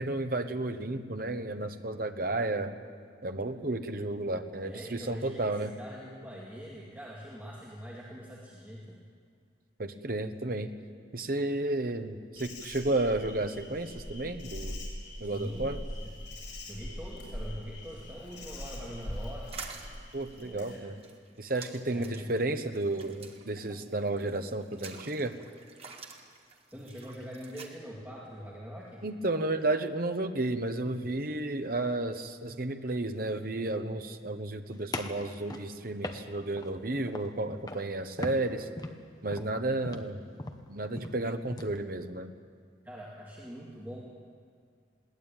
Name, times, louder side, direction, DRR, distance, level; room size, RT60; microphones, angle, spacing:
voice 1, 0.0-2.8 3.2-5.7 9.8-10.7 11.1-14.8 15.2-15.8 20.1-21.0 21.4-25.3 29.0-38.7 39.2-40.2 40.7-42.3, right 2 dB, 50° right, 7 dB, 1.2 m, -32 dB
voice 2, 4.6-9.0 15.3-15.7 16.0-16.1 16.6-19.7 20.4-20.8 21.9-22.3 26.7-29.0 42.8-44.0, equal, 10° right, -6 dB, 2.6 m, -43 dB
Insect, 12.4-20.8, left 1 dB, 75° left, 7.3 m, -42 dB
sound 1, 19.5-27.7, right 5 dB, 30° right, 1.8 m, -48 dB
sound 2, 34.9-36.7 37.1-37.4 37.7-37.9 38.2-41.8, left 1 dB, 20° left, 1.1 m, -40 dB
21.5 x 17.5 x 9.1 m, 2.2 s
head